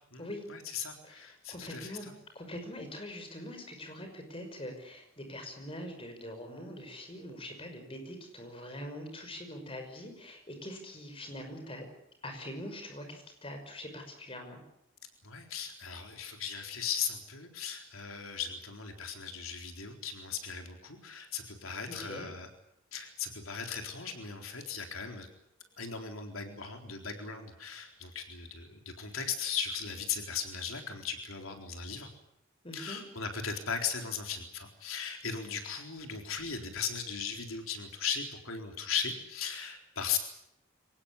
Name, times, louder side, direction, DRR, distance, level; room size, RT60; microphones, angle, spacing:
voice 1, 0.1-2.1 15.2-22.5 22.9-25.3 25.8-32.1 32.7-40.2, left 6 dB, 90° left, 4 dB, 4.0 m, -37 dB
voice 2, 1.0-2.1 2.3-11.9 12.2-14.6 21.9-22.3 32.6-33.0, left 1 dB, 25° left, 5 dB, 5.8 m, -43 dB
24.5 x 19.5 x 9.8 m, 0.80 s
head